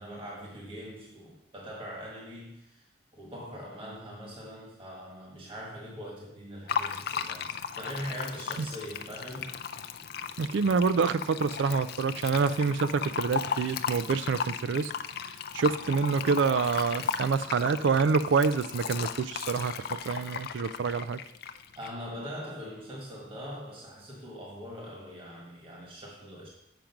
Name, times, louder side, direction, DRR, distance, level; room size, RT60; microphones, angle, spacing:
voice 1, 0.0-2.9 3.1-9.9 21.7-26.5, equal, 30° right, -3 dB, 1.7 m, -42 dB
Fill (with liquid), 6.7-21.9, left 7 dB, 55° left, 0.4 m, -36 dB
voice 2, 10.4-14.9 15.5-21.2, right 5 dB, 80° right, 14 dB, 0.4 m, -27 dB
7.7 x 5.1 x 5.8 m, 0.80 s
head